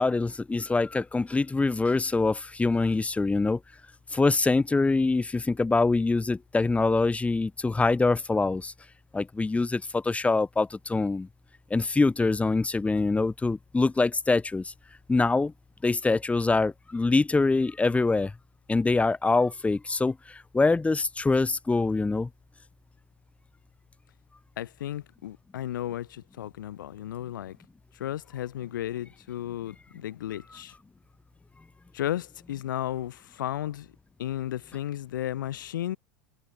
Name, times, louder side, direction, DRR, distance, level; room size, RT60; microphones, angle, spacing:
voice 1, 0.0-3.6 4.1-8.7 9.1-11.3 11.7-14.6 15.1-15.5 15.8-18.3 18.7-20.1 20.5-22.3, left 3 dB, 10° left, 2.6 m, -24 dB
voice 2, 24.6-27.6 27.9-30.7 31.9-33.9 34.2-36.0, left 12 dB, 80° left, 6.0 m, -34 dB
hypercardioid pair, 95°, 10 cm